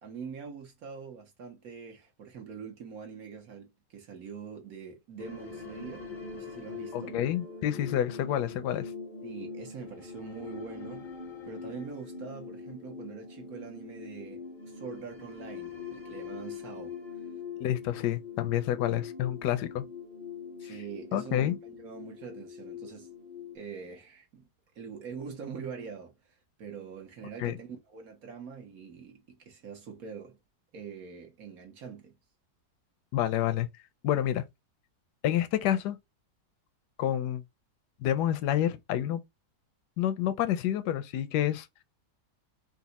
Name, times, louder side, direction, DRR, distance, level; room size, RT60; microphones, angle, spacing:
voice 1, 0.0-7.2 9.2-11.1 11.5-17.0 20.6-23.1 23.5-24.5 24.7-26.2 26.6-30.4 30.7-32.1, right 6 dB, 65° right, 1.5 m, -44 dB
sound 1, 5.2-23.6, left 5 dB, 55° left, 0.5 m, -43 dB
voice 2, 6.9-8.9 17.6-19.8 20.6-20.7 21.1-21.6 27.4-27.6 33.1-33.7 34.0-34.4 35.2-36.0 37.0-37.4 38.0-39.2 40.0-41.7, left 11 dB, 85° left, 1.2 m, -28 dB
4.1 x 2.3 x 4.0 m
omnidirectional pair, 1.7 m